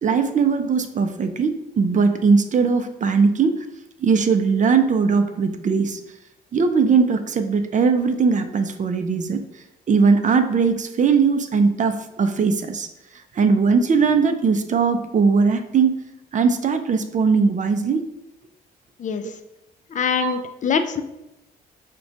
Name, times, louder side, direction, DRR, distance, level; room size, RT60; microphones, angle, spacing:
voice 1, 0.0-3.6 4.0-6.0 6.5-9.4 9.9-12.9 13.3-15.9 16.3-18.0 20.2-20.5, right 5 dB, 35° right, 7 dB, 0.4 m, -19 dB
voice 2, 19.0-19.3 19.9-21.0, left 6 dB, 35° left, 9 dB, 0.4 m, -24 dB
4.8 x 2.2 x 2.5 m, 0.90 s
supercardioid pair, 55°, 21 cm